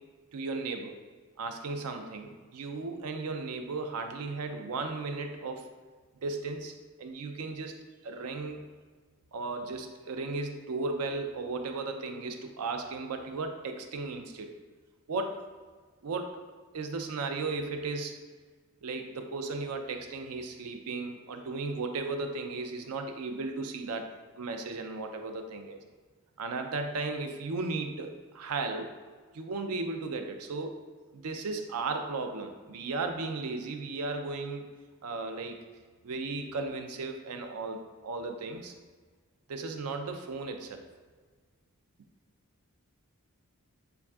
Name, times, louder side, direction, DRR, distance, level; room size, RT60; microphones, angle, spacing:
voice 1, 0.3-1.0 1.4-5.7 6.2-8.6 9.3-14.5 15.1-15.5 16.0-16.3 16.7-18.2 18.8-24.1 24.3-25.8 26.4-28.9 29.3-30.8 31.1-34.7 35.0-35.6 36.0-38.7 39.5-40.8, right 3 dB, 85° right, 5 dB, 0.5 m, -35 dB
6.9 x 2.5 x 2.3 m, 1.4 s
head